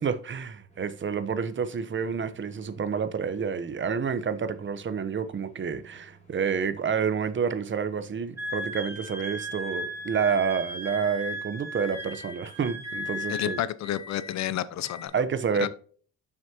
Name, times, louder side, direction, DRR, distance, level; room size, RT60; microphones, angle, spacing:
voice 1, 0.0-13.6 15.1-15.7, right 6 dB, 40° right, 0.9 m, -29 dB
sound 1, 0.7-11.4 11.8-12.4 12.8-13.4 13.8-14.4 14.8-15.1, left 2 dB, 20° left, 2.8 m, -50 dB
Wind instrument woodwind instrument, 8.4-13.7, equal, 10° right, 2.6 m, -36 dB
voice 2, 13.3-15.1 15.6-15.7, left 12 dB, 65° left, 0.7 m, -30 dB
7.2 x 6.3 x 2.9 m
cardioid pair, 90°, 30 cm